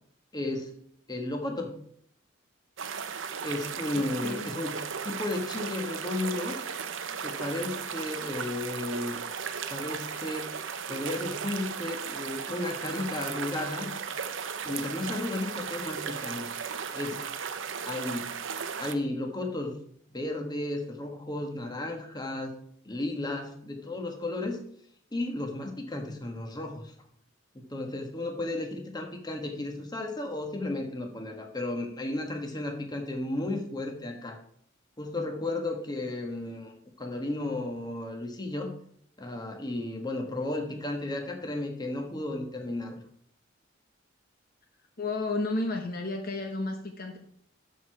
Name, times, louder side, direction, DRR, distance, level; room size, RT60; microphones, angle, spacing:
voice 1, 0.3-0.8 1.1-1.8 3.4-4.8 5.0-6.6 7.2-9.2 9.7-10.5 10.9-13.9 14.6-16.5 16.9-17.3 17.8-18.4 18.8-19.7 20.1-22.6 22.8-24.6 25.1-26.9 27.5-34.4 35.0-36.7 37.0-38.7 39.2-43.0, left 2 dB, 20° left, 3 dB, 1.4 m, -34 dB
sound 1, 2.8-18.9, right 6 dB, 75° right, 0.7 m, -36 dB
voice 2, 3.9-4.6 45.0-47.2, left 2 dB, 50° left, 4 dB, 1.1 m, -32 dB
12.5 x 4.8 x 4.7 m, 0.65 s
head